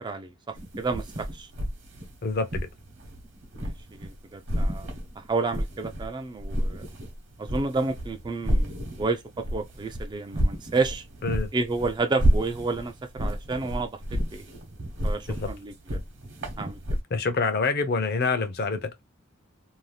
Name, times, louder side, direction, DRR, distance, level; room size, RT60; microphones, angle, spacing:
voice 1, 0.0-1.5 3.6-6.9 7.4-11.0 11.5-14.5 15.0-16.0 16.6-16.8, right 3 dB, 20° right, 0.3 m, -31 dB
sound 1, 0.5-4.2 4.5-6.1 6.4-17.0, equal, 60° right, 0.9 m, -30 dB
voice 2, 2.2-2.7 11.2-11.5 15.4-15.5 17.1-19.0, left 4 dB, 50° left, 0.5 m, -26 dB
2.7 x 2.1 x 3.1 m
head